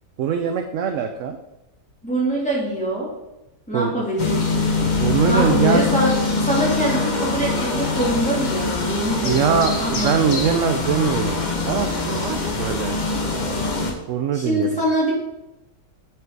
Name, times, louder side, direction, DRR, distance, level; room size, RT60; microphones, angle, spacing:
voice 1, 0.2-1.4 3.7-4.0 5.0-5.9 9.2-13.0 14.1-14.8, right 7 dB, 70° right, 6 dB, 0.7 m, -22 dB
voice 2, 2.0-3.1 3.7-4.5 5.3-6.1 6.4-10.4 14.3-15.1, right 1 dB, 5° left, -6 dB, 2.6 m, -24 dB
sound 1, 4.2-13.9, left 3 dB, 35° left, 0.8 m, -23 dB
8.0 x 4.9 x 4.6 m, 0.93 s
omnidirectional pair, 1.8 m